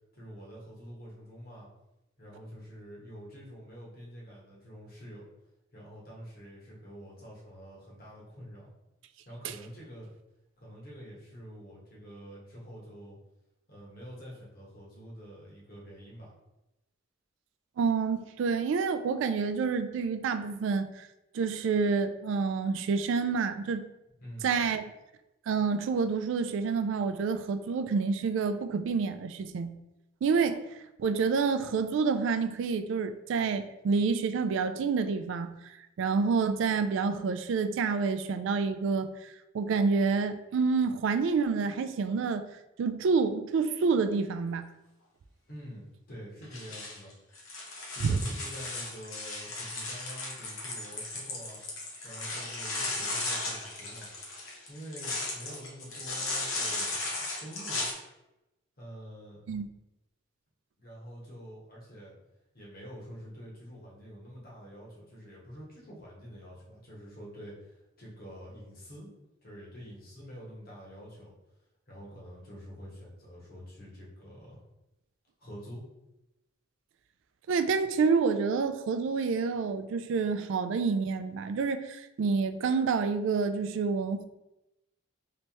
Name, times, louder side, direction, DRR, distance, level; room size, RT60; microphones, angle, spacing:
voice 1, 0.2-1.7 2.2-5.2 5.7-8.7 9.3-10.1 10.6-13.1 13.7-16.3 24.1-24.5 45.5-47.1 47.9-51.6 52.0-54.1 54.7-57.9 58.8-59.4 60.8-62.1 62.5-69.1 69.4-71.3 71.9-74.6 75.4-75.8, equal, 45° left, -4 dB, 1.2 m, -46 dB
voice 2, 17.8-21.1 21.3-23.9 24.4-24.8 25.5-29.7 30.2-30.6 31.0-42.5 42.8-44.6 48.0-48.2 59.5-59.7 77.5-84.3, right 5 dB, 65° right, 9 dB, 0.3 m, -28 dB
sound 1, 46.4-57.9, left 2 dB, 80° left, 0.9 m, -36 dB
3.3 x 3.1 x 2.9 m, 0.93 s
head